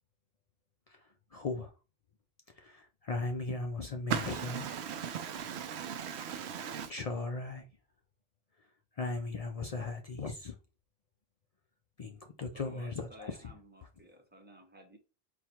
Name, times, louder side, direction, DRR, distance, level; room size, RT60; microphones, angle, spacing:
voice 1, 0.9-1.7 2.5-4.7 6.9-7.7 8.6-8.7 8.9-10.6 12.0-13.5, left 3 dB, 50° left, 0.5 m, -38 dB
voice 2, 4.1-6.9, right 8 dB, 90° right, 0.9 m, -37 dB
voice 3, 12.4-15.0, left 1 dB, 10° right, 0.7 m, -54 dB
4.3 x 2.2 x 4.2 m
omnidirectional pair, 1.1 m